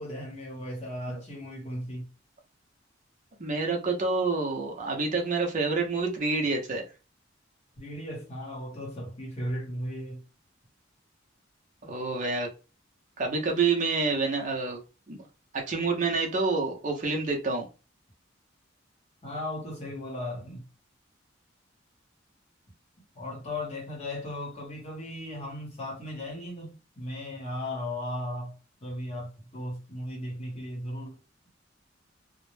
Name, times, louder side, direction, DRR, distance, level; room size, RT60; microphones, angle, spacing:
voice 1, 0.0-2.1 7.8-10.2 19.2-20.6 23.1-28.5 28.8-31.2, left 1 dB, 35° left, 0.9 m, -36 dB
voice 2, 3.4-6.9 11.8-12.5 13.2-14.8 15.1-15.2 15.5-17.7, right 4 dB, 40° right, 0.5 m, -28 dB
2.1 x 2.0 x 3.1 m
head